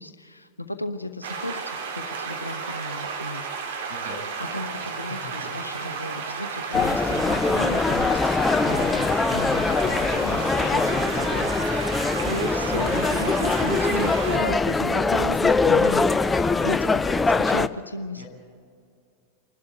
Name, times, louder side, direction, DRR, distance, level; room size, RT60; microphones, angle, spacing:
voice 1, 0.0-3.7 4.4-16.0 16.3-17.0 17.4-18.2, left 1 dB, 85° left, 8 dB, 0.9 m, -35 dB
sound 1, 1.2-14.4, right 5 dB, 60° right, 2.5 m, -33 dB
voice 2, 3.9-4.2 5.1-5.3 5.7-6.0 10.3-11.3 11.7-12.3 12.6-13.0 18.1-18.3, right 1 dB, 80° right, 0 dB, 7.4 m, -41 dB
sound 2, 6.7-17.7, left 4 dB, 10° left, 0.5 m, -22 dB
28.0 x 12.5 x 9.0 m, 2.2 s
figure-of-eight pair, 90°, 0 cm